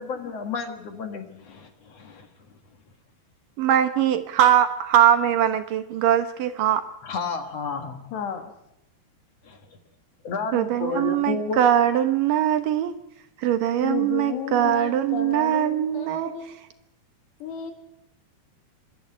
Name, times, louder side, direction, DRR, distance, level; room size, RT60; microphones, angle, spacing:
voice 1, 0.0-2.3 7.0-8.1 9.5-9.6 10.2-11.6, left 4 dB, 55° left, 6 dB, 2.0 m, -31 dB
voice 2, 3.6-6.8 10.5-12.9 13.4-16.3, right 10 dB, 70° right, 9 dB, 2.3 m, -21 dB
voice 3, 8.1-8.5 13.8-16.6 17.4-17.7, left 8 dB, 90° left, 6 dB, 4.4 m, -33 dB
26.0 x 13.0 x 9.9 m, 0.85 s
omnidirectional pair, 4.7 m